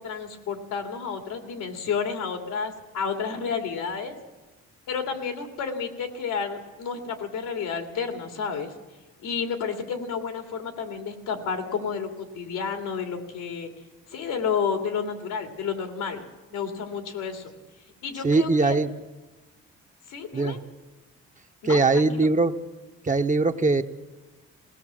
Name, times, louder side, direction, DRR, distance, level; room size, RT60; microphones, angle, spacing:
voice 1, 0.0-4.2 4.9-8.7 9.2-13.7 14.1-16.2 16.5-17.5 18.0-18.8 20.1-20.6 21.6-22.3, left 6 dB, 85° left, 6 dB, 2.8 m, -31 dB
voice 2, 18.2-18.9 20.3-20.6 21.6-22.5 23.0-23.8, right 3 dB, 25° right, 7 dB, 1.0 m, -21 dB
20.5 x 17.5 x 7.6 m, 1.2 s
cardioid pair, 90°, 30 cm